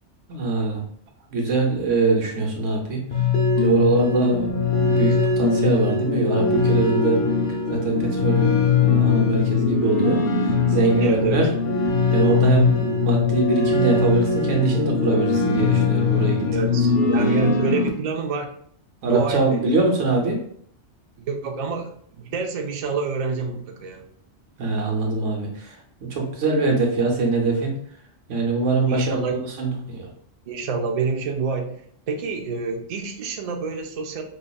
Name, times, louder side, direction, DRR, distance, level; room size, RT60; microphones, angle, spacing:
voice 1, 0.3-0.8 1.3-3.0 3.6-7.2 7.7-11.5 12.1-16.5 17.0-17.1 19.0-20.4 24.6-25.8 26.0-27.7 28.3-30.1, right 3 dB, 85° right, 1 dB, 1.2 m, -23 dB
sound 1, 3.1-17.9, left 5 dB, 60° left, 0.8 m, -21 dB
voice 2, 11.0-11.4 16.5-18.5 19.0-19.7 21.2-24.0 28.8-29.4 30.5-34.2, right 4 dB, 55° right, 3 dB, 0.4 m, -27 dB
5.3 x 2.4 x 2.3 m, 0.63 s
omnidirectional pair, 1.2 m